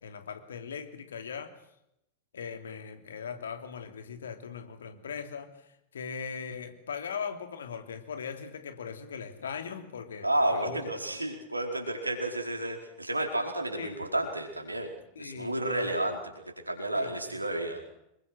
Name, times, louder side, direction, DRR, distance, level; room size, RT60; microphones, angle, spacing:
voice 1, 0.0-1.5 2.3-10.8 13.7-14.0 15.1-15.9 16.9-17.1, left 6 dB, 65° left, 7 dB, 3.1 m, -39 dB
voice 2, 10.2-14.9 15.2-16.2 16.7-17.8, right 1 dB, 85° right, 3 dB, 4.7 m, -31 dB
26.5 x 22.5 x 6.3 m, 0.82 s
figure-of-eight pair, 90°, 0 cm